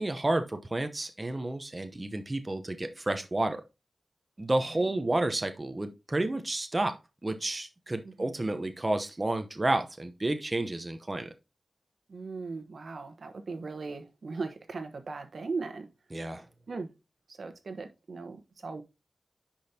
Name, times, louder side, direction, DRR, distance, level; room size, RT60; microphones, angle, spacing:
voice 1, 0.0-3.6 4.4-11.3 16.1-16.5, right 2 dB, 30° right, 0.8 m, -31 dB
voice 2, 4.7-5.1 8.0-8.4 12.1-15.9 16.7-16.9 17.3-18.8, right 4 dB, 70° right, 1.2 m, -38 dB
10.0 x 5.2 x 2.8 m
wide cardioid pair, 85°, 0 cm